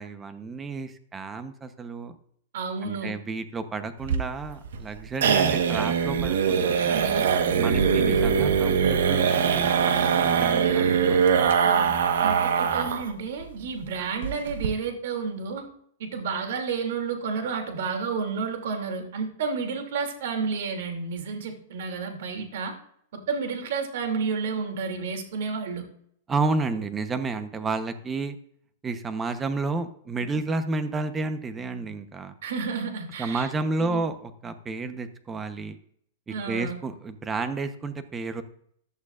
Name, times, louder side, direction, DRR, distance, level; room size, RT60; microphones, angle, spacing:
voice 1, 0.0-2.1 2.8-6.9 7.6-11.2 26.3-28.4 28.8-32.4 33.2-35.8 36.3-38.4, right 3 dB, 15° right, 10 dB, 0.9 m, -31 dB
voice 2, 2.5-3.1 6.9-7.3 7.6-8.1 11.6-11.9 12.2-15.7 16.0-22.7 23.1-25.9 32.4-33.5 33.7-34.0 36.3-36.8, right 5 dB, 70° right, 4 dB, 2.7 m, -31 dB
sound 1, 4.0-13.1 13.4-13.5 13.8-13.9 14.2-14.7, right 6 dB, 85° right, 1.3 m, -22 dB
15.0 x 11.0 x 2.5 m, 0.66 s
supercardioid pair, 150°, 0 cm